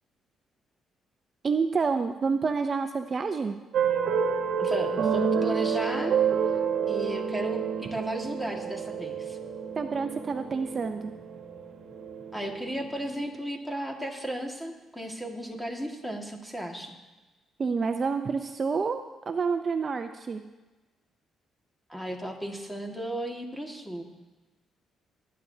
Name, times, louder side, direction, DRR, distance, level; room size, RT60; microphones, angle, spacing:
voice 1, 1.4-3.6 9.8-11.1 17.6-20.4, right 5 dB, 40° right, 7 dB, 0.5 m, -28 dB
sound 1, 3.7-12.9, right 7 dB, 70° right, 1.3 m, -29 dB
voice 2, 4.6-6.2 6.8-9.4 12.3-17.0 21.9-24.0, right 1 dB, 5° left, 1 dB, 1.9 m, -35 dB
19.5 x 9.9 x 2.8 m, 1.2 s
cardioid pair, 90°, 0 cm